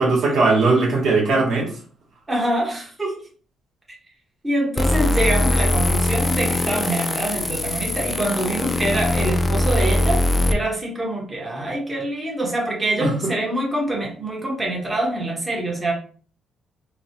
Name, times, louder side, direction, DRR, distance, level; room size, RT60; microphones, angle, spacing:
voice 1, 0.0-1.7 13.0-13.3, right 3 dB, 70° right, -2 dB, 1.1 m, -19 dB
voice 2, 2.3-3.2 4.4-15.9, right 1 dB, 20° right, -2 dB, 1.0 m, -25 dB
sound 1, 4.8-10.5, left 1 dB, 25° left, 0.3 m, -21 dB
3.0 x 2.0 x 2.9 m, 0.42 s
cardioid pair, 90°, 0 cm